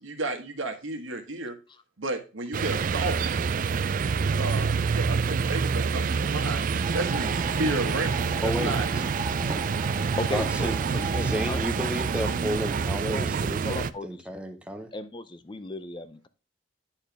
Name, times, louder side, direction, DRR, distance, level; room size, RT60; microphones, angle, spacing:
voice 1, 0.0-1.6 2.0-3.2 4.4-6.6 6.9-8.9, right 2 dB, 90° right, 1.5 m, -32 dB
sound 1, 2.5-13.9, right 5 dB, 45° right, 0.3 m, -27 dB
sound 2, 6.8-12.9, right 2 dB, 20° right, 1.2 m, -39 dB
voice 2, 8.4-9.1 10.3-14.9, equal, 5° right, 0.9 m, -32 dB
voice 3, 10.1-11.6 11.9-12.0 13.1-14.1 14.9-16.3, left 2 dB, 25° left, 0.5 m, -36 dB
10.0 x 4.4 x 3.3 m
head